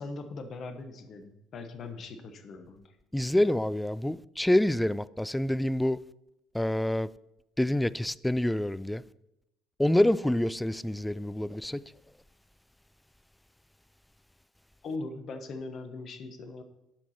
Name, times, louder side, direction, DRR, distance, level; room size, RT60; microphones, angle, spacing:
voice 1, 0.0-2.9 14.8-16.6, left 3 dB, 50° left, 1.0 m, -40 dB
voice 2, 3.1-6.0 6.5-7.1 7.6-9.0 9.8-11.8, left 1 dB, 5° left, 0.3 m, -27 dB
11.5 x 4.7 x 4.4 m
hypercardioid pair, 60°, 0 cm